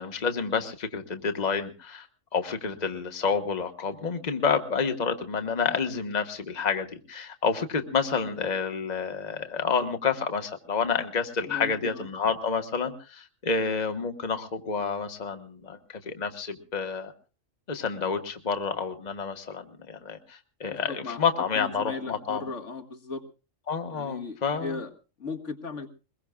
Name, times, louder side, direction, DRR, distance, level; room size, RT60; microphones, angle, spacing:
voice 1, 0.0-2.1 2.3-15.8 16.0-17.1 17.7-22.5 23.7-24.8, left 5 dB, 35° left, 7 dB, 1.4 m, -29 dB
voice 2, 11.5-12.1 20.8-23.2 23.9-24.9 25.2-25.9, left 4 dB, 70° left, 6 dB, 2.0 m, -37 dB
23.0 x 21.5 x 2.3 m, 0.34 s
omnidirectional pair, 1.3 m